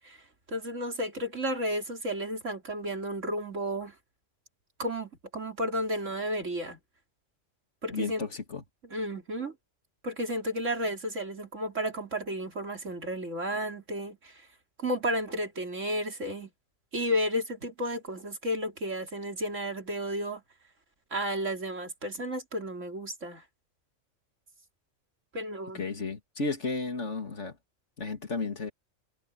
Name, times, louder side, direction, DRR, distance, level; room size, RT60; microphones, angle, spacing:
voice 1, 0.5-3.9 4.8-6.8 7.8-8.3 8.9-9.5 10.0-14.5 14.8-16.5 16.9-20.4 21.1-23.4 25.3-25.9, equal, 70° right, 3.9 m, -32 dB
voice 2, 7.9-8.6 25.7-27.6 28.0-28.7, left 3 dB, 65° left, 2.7 m, -33 dB
omnidirectional pair, 1.3 m